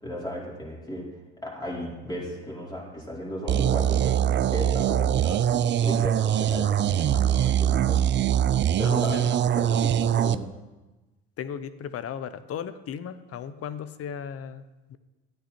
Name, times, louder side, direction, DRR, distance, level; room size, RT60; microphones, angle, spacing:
voice 1, 0.0-1.1 1.4-8.0 8.8-10.4, equal, 15° left, -4 dB, 4.6 m, -35 dB
sound 1, 3.5-10.4, right 10 dB, 40° right, 0.5 m, -23 dB
voice 2, 8.8-9.5 11.4-14.6 14.9-15.0, left 8 dB, 50° left, 13 dB, 0.9 m, -36 dB
13.0 x 9.3 x 4.4 m, 1.1 s
supercardioid pair, 75°, 30 cm